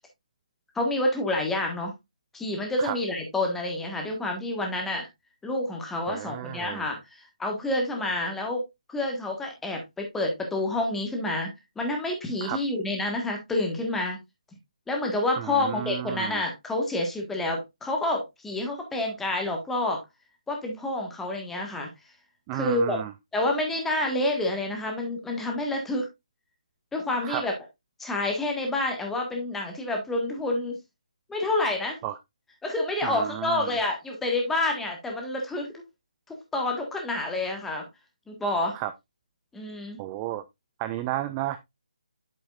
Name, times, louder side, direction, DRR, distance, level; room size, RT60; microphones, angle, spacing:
voice 1, 0.7-1.9 2.3-5.1 5.4-8.6 8.9-11.5 11.7-14.2 14.9-20.0 20.5-21.9 22.5-23.0 23.3-26.1 26.9-27.5 28.0-30.8 31.3-32.0 32.6-35.7 36.3-37.9 38.3-38.8 39.5-40.0, left 2 dB, 5° left, 1.6 m, -28 dB
voice 2, 6.1-6.9 12.4-12.6 15.4-16.4 22.5-23.1 27.2-27.5 32.0-32.2 33.0-33.8 38.7-38.9 40.0-40.4 40.8-41.6, right 14 dB, 20° right, 0.4 m, -32 dB
8.3 x 7.1 x 2.5 m
figure-of-eight pair, 155°, 4 cm